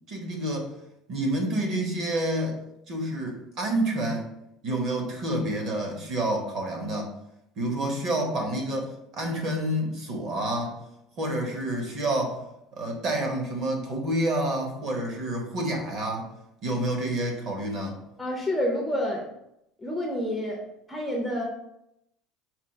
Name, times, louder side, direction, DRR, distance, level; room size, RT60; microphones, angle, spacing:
voice 1, 0.1-0.7 1.1-2.6 2.9-4.3 4.6-7.1 7.6-10.8 11.2-12.4 12.7-16.3 16.6-18.0, right 1 dB, 35° right, 1 dB, 0.9 m, -28 dB
voice 2, 18.2-19.3 19.8-20.6 20.9-21.4, left 1 dB, 5° left, -1 dB, 0.5 m, -28 dB
4.4 x 2.3 x 4.4 m, 0.80 s
cardioid pair, 180°, 0 cm